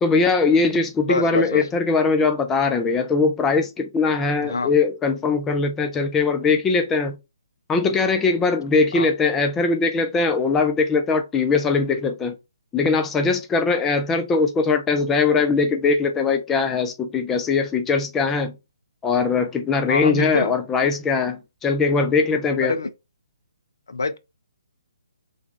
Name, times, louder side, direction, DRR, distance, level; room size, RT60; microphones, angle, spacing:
voice 1, 0.0-7.2 7.7-12.4 12.7-18.5 19.0-22.7, left 4 dB, 10° left, 0.4 m, -21 dB
voice 2, 1.0-1.6 4.4-4.7 8.9-9.1 19.9-20.5 22.6-22.9 23.9-24.2, left 3 dB, 65° left, 0.5 m, -25 dB
3.3 x 2.3 x 3.6 m
figure-of-eight pair, 135°, 2 cm